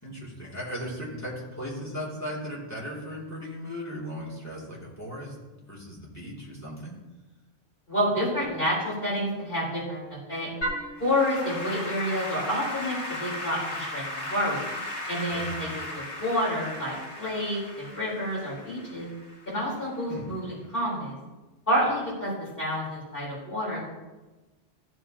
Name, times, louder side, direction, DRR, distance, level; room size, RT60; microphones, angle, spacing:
voice 1, 0.0-5.4 5.7-7.0 15.3-15.6 20.1-20.2, equal, 15° left, -6 dB, 2.7 m, -37 dB
voice 2, 7.9-10.5 11.0-14.7 15.1-19.1 19.5-21.1 21.7-23.8, equal, 50° left, -7 dB, 4.4 m, -29 dB
Applause / Keyboard (musical), 10.6-19.9, left 1 dB, 70° left, 2.2 m, -36 dB
14.5 x 8.2 x 2.9 m, 1.2 s
omnidirectional pair, 1.2 m